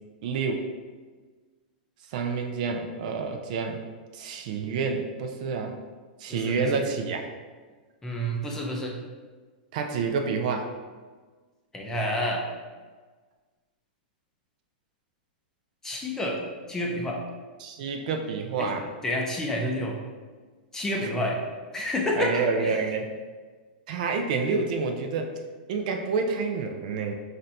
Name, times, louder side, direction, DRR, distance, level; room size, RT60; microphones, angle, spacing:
voice 1, 0.2-0.6 2.1-3.8 4.1-5.7 6.2-7.2 9.7-10.7 17.6-18.9 21.0-21.1 22.2-23.1 23.9-25.3 25.7-27.1, right 4 dB, 55° right, 4 dB, 0.4 m, -28 dB
voice 2, 6.3-6.8 8.0-9.0 11.7-12.4 15.8-16.4 16.7-17.2 18.6-18.7 19.0-20.0 20.7-21.4 21.7-22.9, left 1 dB, 10° left, -1 dB, 0.5 m, -29 dB
3.3 x 2.6 x 4.1 m, 1.4 s
hypercardioid pair, 145°, 5 cm